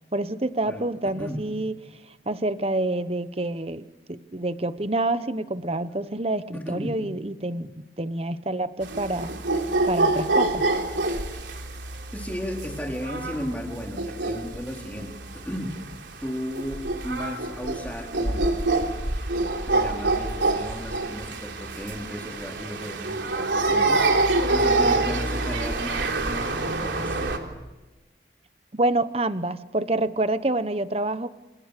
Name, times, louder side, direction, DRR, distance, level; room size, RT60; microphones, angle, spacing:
voice 1, 0.1-9.3 9.9-10.7 28.7-31.3, right 2 dB, 35° right, 13 dB, 1.1 m, -27 dB
voice 2, 6.5-6.9 11.3-11.5 12.1-15.1 15.4-15.7 16.2-18.4 19.2-19.3 19.7-24.1 24.5-27.4, equal, 10° left, 0 dB, 4.1 m, -34 dB
sound 1, 8.8-27.4, right 2 dB, 85° right, 3.6 m, -26 dB
29.0 x 27.5 x 6.8 m, 1.1 s
head